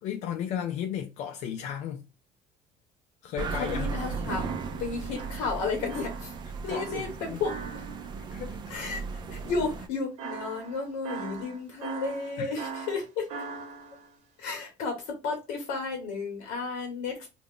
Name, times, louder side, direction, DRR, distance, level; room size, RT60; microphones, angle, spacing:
voice 1, 0.0-2.0 3.2-4.0 6.7-7.4 8.3-8.7 12.4-12.5, left 9 dB, 65° left, 0.4 m, -34 dB
sound 1, 3.4-9.9, right 5 dB, 35° right, 0.4 m, -36 dB
voice 2, 3.5-6.3 6.6-7.6 8.7-13.3 14.4-17.3, left 4 dB, 85° left, 0.9 m, -33 dB
sound 2, 4.4-8.2 10.2-14.1, right 5 dB, 65° right, 0.9 m, -41 dB
2.3 x 2.1 x 3.5 m
cardioid pair, 125°, 13 cm